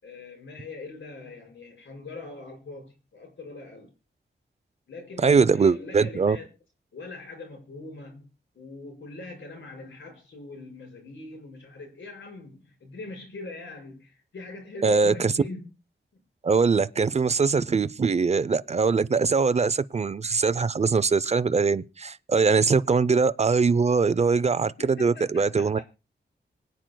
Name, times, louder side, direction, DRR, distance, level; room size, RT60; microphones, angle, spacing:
voice 1, 0.0-3.9 4.9-6.5 6.9-8.3 8.6-15.6 16.1-16.2 24.6-25.8, left 3 dB, 85° left, 5.6 m, -42 dB
voice 2, 5.2-6.4 14.8-15.3 16.4-25.8, right 5 dB, 35° right, 0.5 m, -22 dB
24.5 x 9.1 x 2.3 m
wide cardioid pair, 115°, 19 cm